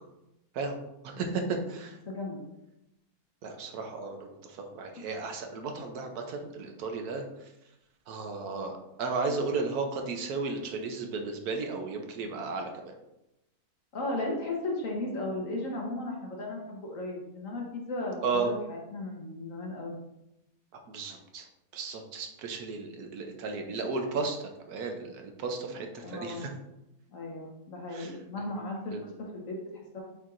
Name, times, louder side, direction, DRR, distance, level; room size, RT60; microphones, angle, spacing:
voice 1, 1.0-2.0 3.4-7.5 8.1-12.9 18.2-18.5 20.7-21.5 21.7-26.5 27.9-28.2 28.9-29.0, right 4 dB, 80° right, 4 dB, 1.3 m, -34 dB
voice 2, 2.1-2.5 13.9-18.5 18.9-19.9 26.0-26.5 27.1-30.0, left 2 dB, 60° left, 0 dB, 1.5 m, -36 dB
8.2 x 4.5 x 2.5 m, 0.90 s
omnidirectional pair, 1.6 m